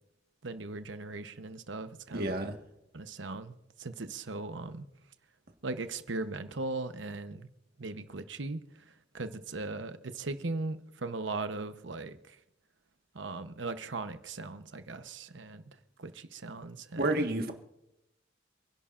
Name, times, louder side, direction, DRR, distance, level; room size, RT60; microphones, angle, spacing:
voice 1, 0.4-2.3 2.9-4.9 5.6-7.5 7.8-8.6 9.1-12.4 13.1-15.6 16.0-17.3, right 3 dB, 90° right, 1.0 m, -38 dB
voice 2, 2.1-2.6 17.0-17.5, right 2 dB, 55° right, 1.6 m, -30 dB
28.5 x 11.0 x 2.6 m
head